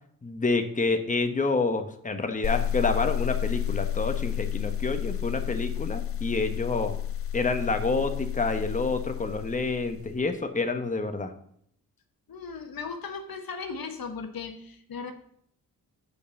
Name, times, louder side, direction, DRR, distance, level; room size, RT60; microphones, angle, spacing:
voice 1, 0.2-7.0 7.3-11.3, left 3 dB, 20° left, 6 dB, 1.1 m, -28 dB
sound 1, 2.4-10.2, left 10 dB, 35° left, 0.4 m, -31 dB
voice 2, 12.3-15.1, left 5 dB, 60° left, 6 dB, 1.2 m, -37 dB
6.4 x 5.3 x 7.0 m, 0.67 s
supercardioid pair, 45°, 40 cm